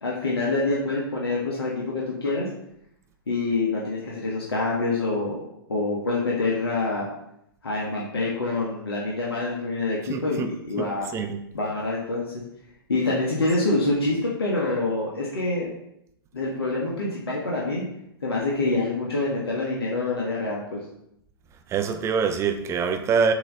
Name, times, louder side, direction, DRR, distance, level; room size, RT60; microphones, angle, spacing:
voice 1, 0.0-2.5 3.3-5.4 5.7-7.1 7.6-11.1 11.5-12.3 12.9-15.7 16.3-17.8 18.2-20.6, left 2 dB, 80° left, -4 dB, 1.4 m, -26 dB
voice 2, 10.1-10.5 10.8-10.9 11.1-11.4 21.7-23.3, right 6 dB, 20° right, 7 dB, 0.6 m, -24 dB
7.6 x 3.1 x 3.9 m, 0.79 s
hypercardioid pair, 115°, 13 cm